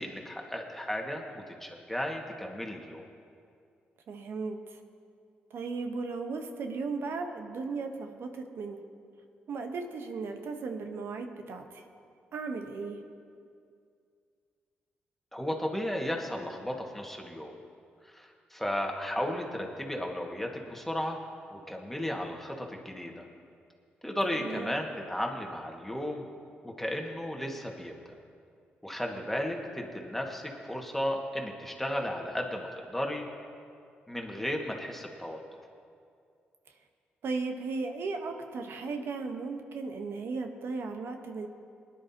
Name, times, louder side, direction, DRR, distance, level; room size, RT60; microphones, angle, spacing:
voice 1, 0.0-3.0 15.3-17.5 18.1-21.2 21.5-23.2 24.0-26.3 26.6-27.9 28.8-33.3 34.1-35.4, left 1 dB, 5° left, 1 dB, 1.9 m, -34 dB
voice 2, 4.1-4.8 5.5-8.8 9.5-11.8 12.3-13.0 24.3-24.7 37.2-41.5, right 4 dB, 65° right, 5 dB, 1.1 m, -36 dB
20.0 x 10.5 x 2.9 m, 2.3 s
supercardioid pair, 50°, 4 cm